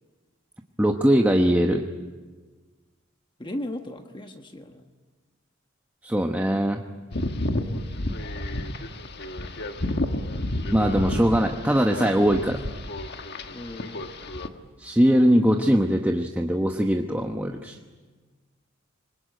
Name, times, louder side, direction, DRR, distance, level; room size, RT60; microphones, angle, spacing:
voice 1, 0.8-1.8 6.0-6.8 10.7-12.6 14.8-17.8, equal, 10° right, 3 dB, 1.0 m, -21 dB
voice 2, 3.4-4.9 13.5-14.1, left 1 dB, 25° left, 5 dB, 1.3 m, -36 dB
sound 1, 7.1-14.5, left 1 dB, 55° left, 1.5 m, -31 dB
25.5 x 21.5 x 9.1 m, 1.4 s
head